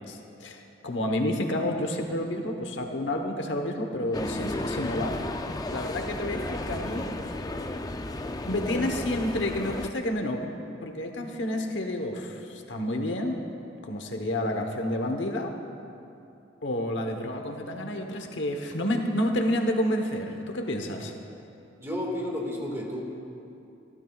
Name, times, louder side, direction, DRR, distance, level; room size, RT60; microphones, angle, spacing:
voice 1, 0.1-5.2 5.7-7.1 8.5-10.4 10.8-13.4 13.8-15.5 16.6-21.1, left 1 dB, 70° left, 3 dB, 1.1 m, -29 dB
sound 1, 4.1-9.9, left 2 dB, 20° left, 0.5 m, -33 dB
voice 2, 21.8-23.0, left 1 dB, 15° right, -2 dB, 1.9 m, -31 dB
26.0 x 13.0 x 2.4 m, 2.7 s
head